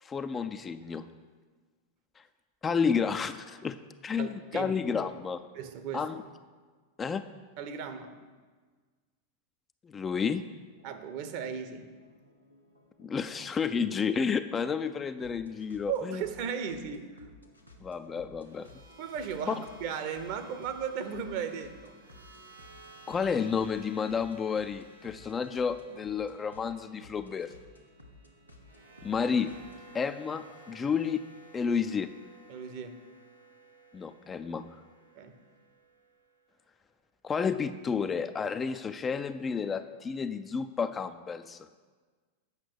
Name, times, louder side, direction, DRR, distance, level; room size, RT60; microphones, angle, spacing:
voice 1, 0.0-1.1 2.6-3.8 4.0-5.4 5.9-6.2 7.0-7.2 9.8-10.4 13.0-16.2 17.8-18.7 19.5-19.6 23.1-27.6 29.0-31.2 31.5-32.1 33.9-34.8 37.2-41.7, left 6 dB, 20° left, 10 dB, 0.3 m, -31 dB
voice 2, 4.2-4.7 5.5-6.1 7.6-8.1 10.8-11.9 15.9-17.3 19.0-22.3 32.5-33.0 35.2-35.4, right 7 dB, 45° right, 9 dB, 0.8 m, -36 dB
sound 1, 10.4-30.0, left 2 dB, 90° left, 1.1 m, -57 dB
sound 2, 18.4-36.5, right 2 dB, 85° right, 1.9 m, -55 dB
8.1 x 5.9 x 6.5 m, 1.4 s
figure-of-eight pair, 90°, 0 cm